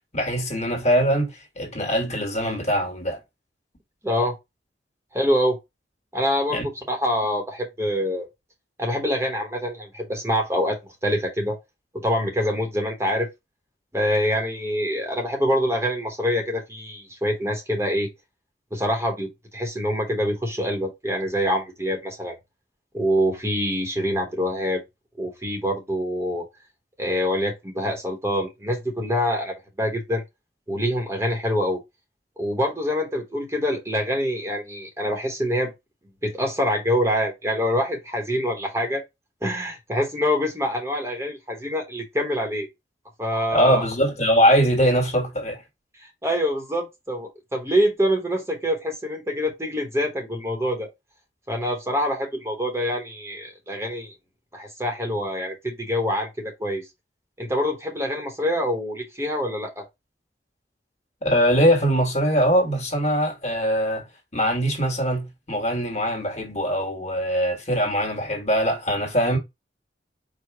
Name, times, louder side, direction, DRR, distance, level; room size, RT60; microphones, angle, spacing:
voice 1, 0.1-3.2 6.5-6.6 43.5-45.6 61.2-64.1 64.3-69.4, equal, 40° left, 1.6 m, -22 dB
voice 2, 4.0-4.3 5.1-5.6 6.1-6.6 6.9-8.3 8.8-11.6 12.0-13.3 13.9-18.1 18.7-19.3 19.5-22.4 22.9-24.8 25.2-26.5 27.0-30.2 30.7-31.8 32.4-35.7 36.2-39.0 39.4-42.7 43.2-43.8 46.0-50.9 51.5-54.1 54.5-56.9 57.4-59.8, equal, 15° right, 1.0 m, -25 dB
4.8 x 2.3 x 4.6 m
head